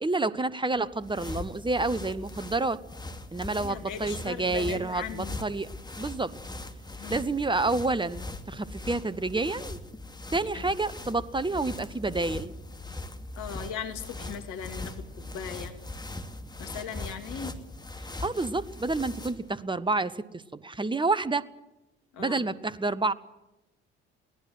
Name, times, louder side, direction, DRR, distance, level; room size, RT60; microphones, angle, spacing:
voice 1, 0.0-2.8 3.3-5.7 6.0-6.4 7.1-9.8 10.3-12.5 18.2-21.5 22.2-23.1, right 3 dB, 15° right, 15 dB, 1.2 m, -29 dB
sound 1, 0.8-19.5, left 2 dB, 10° left, 2.5 m, -40 dB
voice 2, 3.6-5.4 7.0-7.2 10.5-10.7 13.4-15.8 16.6-17.5 22.1-22.4, left 7 dB, 60° left, 7 dB, 2.6 m, -38 dB
23.0 x 18.5 x 7.9 m, 0.95 s
figure-of-eight pair, 50°, 33 cm